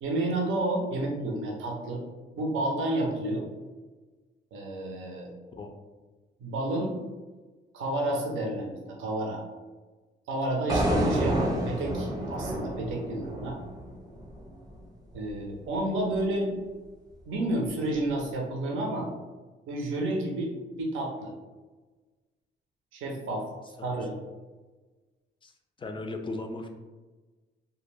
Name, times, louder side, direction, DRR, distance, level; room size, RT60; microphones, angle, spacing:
voice 1, 0.0-2.0 2.4-3.5 4.5-5.3 6.4-7.0 7.7-9.4 10.3-11.4 11.6-13.6 15.1-16.6 17.3-19.1 19.7-21.3 22.9-23.5 23.8-24.2, right 1 dB, 80° right, 0 dB, 0.6 m, -30 dB
sound 1, 10.7-14.8, right 1 dB, 20° right, 0.6 m, -29 dB
voice 2, 25.4-26.7, left 2 dB, 25° left, 5 dB, 0.3 m, -37 dB
2.2 x 2.2 x 3.2 m, 1.3 s
cardioid pair, 90°, 20 cm